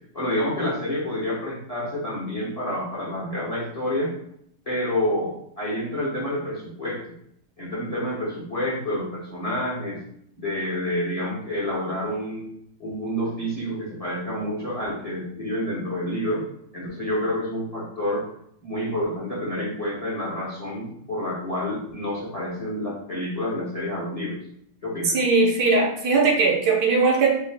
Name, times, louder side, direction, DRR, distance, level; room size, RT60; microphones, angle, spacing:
voice 1, 0.1-4.1 4.7-7.0 7.6-10.0 10.4-12.5 12.8-16.4 16.7-18.3 18.6-24.4 24.8-25.2, left 1 dB, 25° left, -6 dB, 1.0 m, -28 dB
voice 2, 25.0-27.4, right 4 dB, 75° right, -1 dB, 1.3 m, -19 dB
4.7 x 2.3 x 3.4 m, 0.68 s
omnidirectional pair, 1.8 m